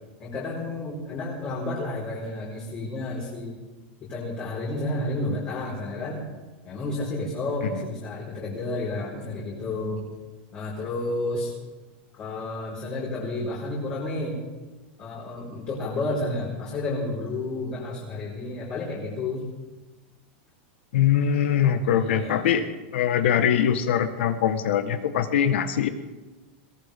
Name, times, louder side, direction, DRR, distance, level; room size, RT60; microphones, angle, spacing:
voice 1, 0.2-3.6 4.1-6.2 6.6-10.1 10.5-11.5 12.2-14.4 15.0-19.5 21.9-22.5, left 2 dB, 30° left, -7 dB, 4.9 m, -31 dB
voice 2, 20.9-22.7 22.9-25.9, left 9 dB, 80° left, 9 dB, 1.4 m, -22 dB
22.0 x 18.0 x 3.7 m, 1.2 s
supercardioid pair, 155°, 6 cm